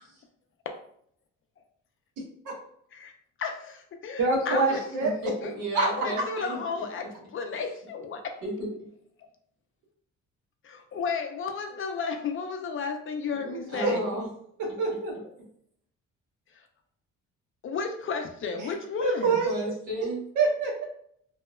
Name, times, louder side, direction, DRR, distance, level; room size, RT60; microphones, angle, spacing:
voice 1, 3.4-4.8 5.4-5.5 5.8-8.4 10.6-14.0 16.5-16.7 17.6-19.4, left 5 dB, 45° left, 5 dB, 0.4 m, -33 dB
voice 2, 4.2-5.1 5.7-5.9 13.4-13.9 14.8-15.1 18.6-18.7 19.0-19.5 20.4-20.8, right 3 dB, 85° right, 0 dB, 0.7 m, -25 dB
voice 3, 5.0-6.6 8.4-8.9 13.7-14.3 19.4-20.2, right 1 dB, 65° right, -4 dB, 1.3 m, -33 dB
2.8 x 2.0 x 2.2 m, 0.67 s
cardioid pair, 90°, 30 cm